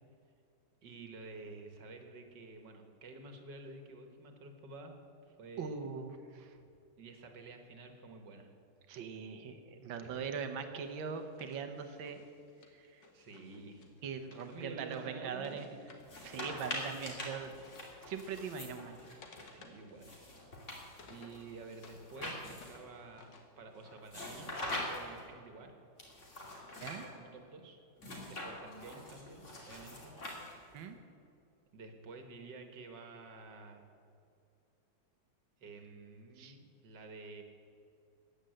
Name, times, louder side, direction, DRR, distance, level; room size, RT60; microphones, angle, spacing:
voice 1, 0.8-4.9 5.3-5.9 7.0-8.5 10.0-10.2 13.1-13.9 14.5-15.9 19.4-20.4 21.1-25.7 27.1-27.8 28.3-30.1 31.7-33.9 35.6-37.4, right 3 dB, 65° right, 5 dB, 2.2 m, -50 dB
voice 2, 5.6-6.6 8.9-12.2 12.7-13.1 14.0-15.7 16.2-17.5 18.0-19.0 26.8-27.1 30.7-31.0 36.4-36.6, right 6 dB, 85° right, 7 dB, 1.8 m, -41 dB
Wood, 10.8-16.9 17.1-22.0 22.3-24.0, left 4 dB, 65° left, 2.2 m, -60 dB
sound 1, 16.0-19.4 20.0-22.9 24.1-25.2 26.0-27.1 28.0-30.8, left 1 dB, 40° left, 2.9 m, -44 dB
15.0 x 9.9 x 7.8 m, 2.6 s
omnidirectional pair, 2.1 m